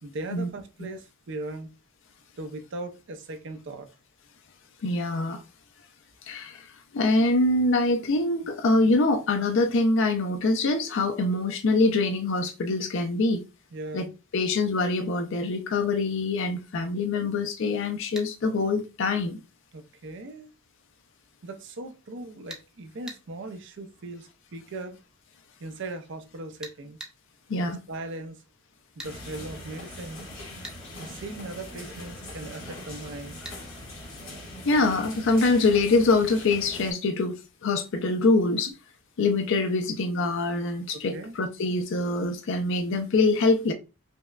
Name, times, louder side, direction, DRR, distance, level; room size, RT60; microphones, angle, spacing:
voice 1, 0.0-1.7 2.4-3.9 13.7-14.1 16.9-17.3 19.7-20.5 21.4-25.0 25.6-27.0 27.6-28.4 29.0-30.2 31.0-33.4 38.7-38.8 40.9-41.4, right 2 dB, 60° right, 0.5 m, -39 dB
voice 2, 4.8-5.4 6.3-6.7 6.9-13.4 13.9-14.1 14.3-19.4 27.5-27.8 34.6-37.4 37.6-38.7 39.2-43.7, left 3 dB, 65° left, 0.5 m, -24 dB
sound 1, 18.2-18.3 22.5-22.7 23.1-23.2 26.6-27.2 29.0-29.2 30.6-30.8 33.4-33.6, right 1 dB, 5° right, 0.6 m, -40 dB
sound 2, 29.0-36.9, left 1 dB, 90° left, 1.7 m, -41 dB
5.2 x 2.1 x 2.3 m
head